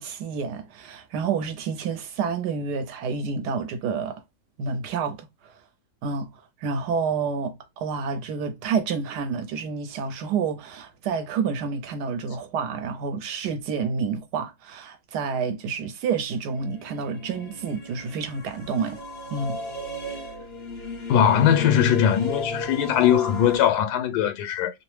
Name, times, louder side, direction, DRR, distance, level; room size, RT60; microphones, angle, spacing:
voice 1, 0.0-4.2 4.6-5.5 6.0-6.3 6.6-19.0 19.3-19.6, right 5 dB, 85° right, 1.2 m, -29 dB
sound 1, 16.3-23.6, left 2 dB, 50° left, 0.8 m, -35 dB
voice 2, 21.1-24.7, left 9 dB, 85° left, 1.2 m, -20 dB
3.0 x 2.1 x 3.1 m
omnidirectional pair, 1.7 m